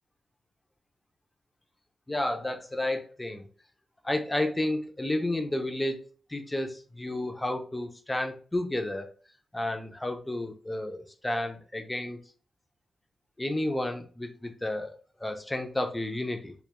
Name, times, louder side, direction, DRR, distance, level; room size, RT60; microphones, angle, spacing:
voice 1, 2.1-3.5 4.0-6.0 6.3-9.1 9.5-12.2 13.4-16.5, left 1 dB, 15° left, 4 dB, 0.4 m, -31 dB
2.2 x 2.0 x 2.9 m, 0.39 s
wide cardioid pair, 100°, 0 cm